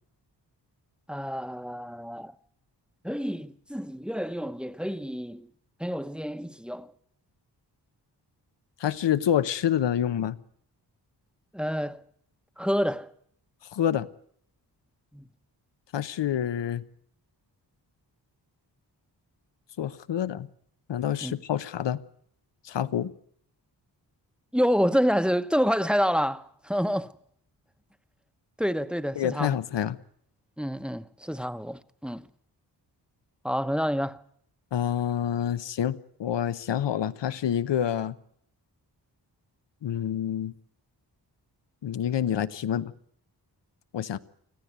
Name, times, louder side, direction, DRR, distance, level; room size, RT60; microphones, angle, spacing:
voice 1, 1.1-2.3 3.0-5.5 5.8-6.9 11.5-12.0 12.6-13.1 15.1-15.3 21.2-21.3 24.5-27.1 28.6-29.6 30.6-32.3 33.4-34.2, equal, ahead, 0.9 m, -28 dB
voice 2, 8.8-10.4 13.7-14.1 15.9-16.8 19.8-20.5 20.9-22.0 22.6-23.1 29.2-30.0 34.7-38.2 39.8-40.5 41.8-42.9 43.9-44.2, left 10 dB, 85° left, 0.9 m, -27 dB
25.0 x 15.0 x 9.4 m
wide cardioid pair, 85°, 42 cm